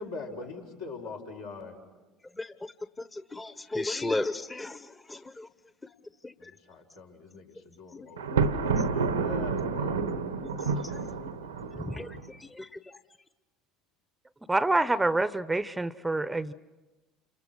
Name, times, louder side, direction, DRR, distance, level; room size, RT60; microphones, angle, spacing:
voice 1, 0.0-1.8 6.4-10.0 10.7-11.3, left 3 dB, 80° left, -3 dB, 5.5 m, -43 dB
voice 2, 2.4-2.7 3.0-5.5 6.2-6.5 7.9-8.5 10.4-10.6 10.9-11.0 11.8-13.0, left 2 dB, 15° left, 11 dB, 1.1 m, -35 dB
Thunder, 8.2-12.3, right 4 dB, 90° right, 1.3 m, -29 dB
voice 3, 14.5-16.5, right 2 dB, 10° right, 16 dB, 0.8 m, -26 dB
29.5 x 27.5 x 6.3 m, 1.1 s
hypercardioid pair, 65°, 0 cm